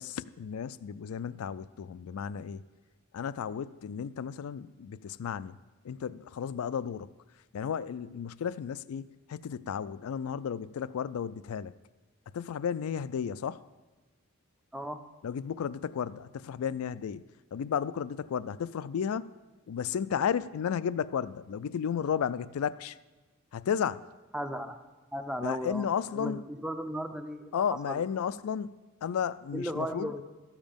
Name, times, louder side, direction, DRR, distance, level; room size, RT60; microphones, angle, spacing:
voice 1, 0.0-2.6 3.1-5.6 5.8-7.1 7.5-11.7 12.3-13.6 15.2-17.2 17.5-19.3 19.7-23.0 23.5-24.0 25.4-26.4 27.5-28.7 29.0-30.1, left 7 dB, 85° left, 17 dB, 0.3 m, -33 dB
voice 2, 24.3-24.8 25.1-25.9 26.1-27.5 27.9-28.0 29.5-30.2, equal, 5° right, 8 dB, 0.5 m, -35 dB
13.0 x 7.3 x 5.2 m, 1.2 s
head